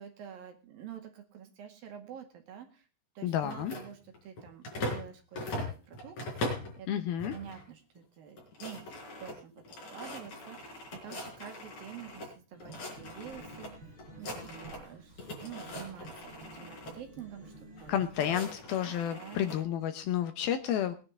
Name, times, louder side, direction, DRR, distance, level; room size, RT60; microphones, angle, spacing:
voice 1, 0.0-2.9 3.2-6.2 6.8-9.6 9.9-17.5 17.8-18.0 18.8-19.5, right 9 dB, 60° right, 5 dB, 3.5 m, -48 dB
voice 2, 3.2-3.7 6.9-7.4 17.9-21.0, left 10 dB, 70° left, 9 dB, 2.5 m, -31 dB
sound 1, 3.4-5.1 5.3-6.7 7.2-7.6 8.0-8.1 8.3-12.3 12.6-13.7 14.0-14.9 15.2-16.9 17.7-19.6, left 1 dB, 45° left, 5.6 m, -40 dB
sound 2, 12.5-18.4, right 2 dB, 25° right, 7.2 m, -51 dB
21.5 x 9.9 x 3.6 m, 0.34 s
omnidirectional pair, 4.9 m